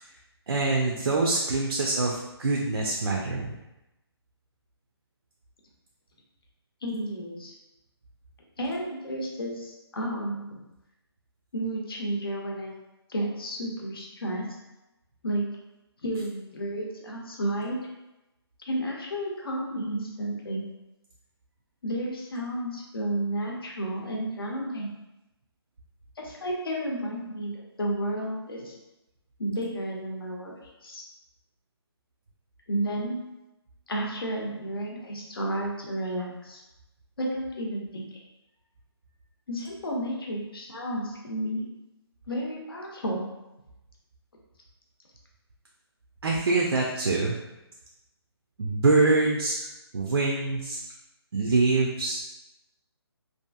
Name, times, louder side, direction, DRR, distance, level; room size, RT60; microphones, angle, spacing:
voice 1, 0.5-3.6 46.2-47.4 48.6-49.7 49.9-50.8 51.3-52.2, right 3 dB, 70° right, -1 dB, 0.4 m, -24 dB
voice 2, 6.8-7.5 8.6-10.6 11.5-12.7 13.1-14.5 15.2-15.4 16.0-17.8 18.6-20.6 21.8-24.9 26.2-28.7 29.4-31.0 32.7-33.2 33.9-36.6 37.2-38.2 39.5-41.6 42.3-43.3, right 1 dB, 60° left, -1 dB, 0.7 m, -32 dB
2.8 x 2.5 x 2.2 m, 0.96 s
hypercardioid pair, 175°, 14 cm